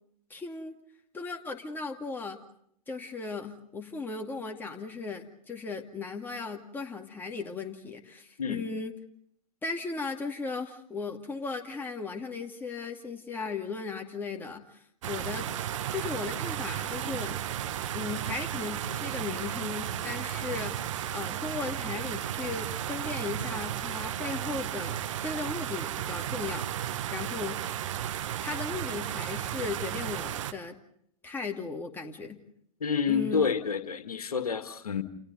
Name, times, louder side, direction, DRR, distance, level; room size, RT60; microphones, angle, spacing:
voice 1, 0.3-0.8 1.1-2.4 2.9-8.9 9.6-15.5 15.9-17.4 17.9-20.8 21.1-26.7 27.1-27.6 28.4-30.8 31.2-32.4 33.1-33.5, left 4 dB, 10° left, 2 dB, 2.3 m, -37 dB
sound 1, 15.0-30.5, right 11 dB, 55° right, 1.4 m, -34 dB
voice 2, 32.8-35.0, left 6 dB, 75° left, 8 dB, 2.1 m, -29 dB
29.5 x 29.0 x 4.0 m, 0.70 s
figure-of-eight pair, 105°, 19 cm